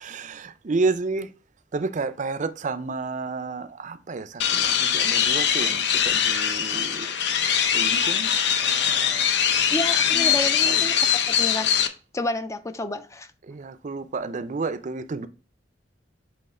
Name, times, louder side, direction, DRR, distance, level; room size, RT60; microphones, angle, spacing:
voice 1, 0.0-1.3 1.7-7.1 7.7-9.7 10.1-10.4 10.6-10.9 13.5-15.3, right 3 dB, 45° right, 0.5 m, -31 dB
sound 1, 4.4-11.9, left 8 dB, 65° left, 0.6 m, -22 dB
voice 2, 9.7-11.0 11.3-11.7 12.1-13.3, left 1 dB, 15° left, 0.4 m, -30 dB
7.8 x 3.0 x 4.2 m
head